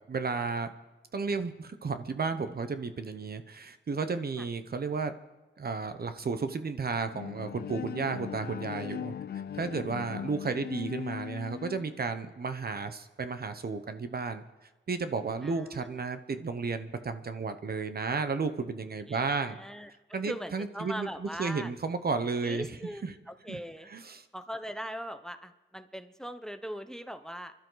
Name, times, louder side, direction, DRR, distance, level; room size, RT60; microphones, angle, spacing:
voice 1, 0.1-0.7 1.1-5.2 5.6-9.1 9.5-14.4 14.9-19.6 20.1-22.7 23.0-23.1 23.5-23.6 23.9-24.2, right 4 dB, 55° right, 9 dB, 1.1 m, -33 dB
Bowed string instrument, 7.1-12.0, left 8 dB, 55° left, 0.4 m, -39 dB
voice 2, 19.1-21.7 22.4-23.9 24.3-27.5, equal, 5° left, 10 dB, 0.9 m, -40 dB
29.5 x 12.0 x 4.0 m, 1.1 s
cardioid pair, 80°, 19 cm